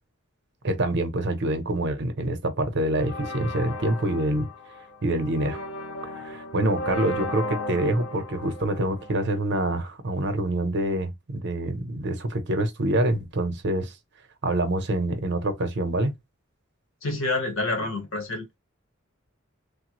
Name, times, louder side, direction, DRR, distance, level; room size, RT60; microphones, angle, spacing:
voice 1, 0.6-4.5 5.0-5.6 6.2-13.9 14.4-16.1, right 1 dB, 60° right, 0.8 m, -26 dB
sound 1, 3.0-9.7, left 1 dB, 85° left, 0.7 m, -36 dB
voice 2, 17.0-18.4, left 2 dB, 70° left, 1.5 m, -27 dB
3.3 x 2.3 x 3.0 m
head